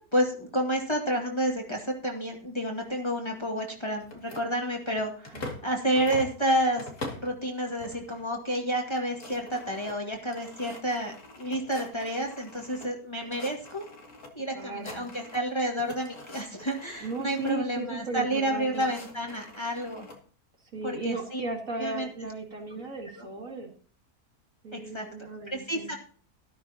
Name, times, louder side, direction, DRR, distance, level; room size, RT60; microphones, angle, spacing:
voice 1, 0.1-13.8 14.3-20.1 20.8-21.4 21.8-22.1 23.2-23.3 24.7-26.0, right 1 dB, 20° left, 0 dB, 2.1 m, -30 dB
sound 1, 4.0-5.7 5.9-7.3 7.8-8.2 8.6-8.7 8.9-12.9 13.2-14.3 14.6-15.5 15.8-17.5 18.3-20.2, left 2 dB, 75° left, 2.8 m, -44 dB
voice 2, 14.5-15.1 17.0-18.9 20.7-23.7 24.6-25.9, right 3 dB, 60° right, 1 dB, 2.9 m, -36 dB
13.0 x 13.0 x 2.9 m, 0.43 s
omnidirectional pair, 1.6 m